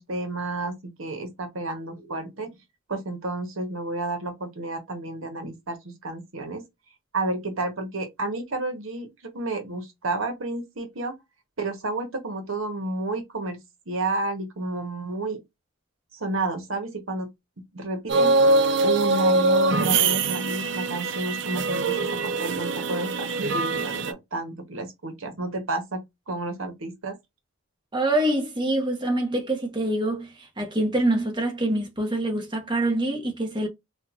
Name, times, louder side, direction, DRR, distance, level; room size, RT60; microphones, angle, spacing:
voice 1, 0.0-2.6 2.9-6.7 7.1-11.1 11.6-13.6 13.9-15.4 16.1-17.3 17.7-18.4 18.8-23.3 23.5-27.2, right 2 dB, 75° right, 1.0 m, -31 dB
sound 1, 18.1-24.1, right 3 dB, 55° right, 0.4 m, -23 dB
voice 2, 27.9-33.7, right 1 dB, 20° right, 1.0 m, -25 dB
4.4 x 2.5 x 2.4 m
head